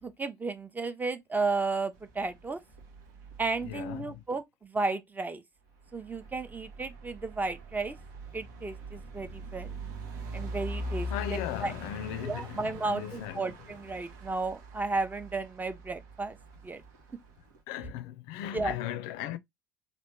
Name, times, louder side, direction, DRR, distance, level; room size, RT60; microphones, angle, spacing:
voice 1, 0.0-2.6 3.4-5.4 5.9-7.9 8.3-9.7 10.3-11.7 12.2-16.4 16.6-16.8 18.5-18.7, right 3 dB, 15° right, 0.6 m, -33 dB
sound 1, 2.0-4.2 5.8-17.6, equal, 75° right, 0.9 m, -42 dB
voice 2, 3.6-4.2 11.1-13.6 17.7-19.4, left 11 dB, 65° left, 0.4 m, -37 dB
3.1 x 2.5 x 3.0 m
hypercardioid pair, 65°, 10 cm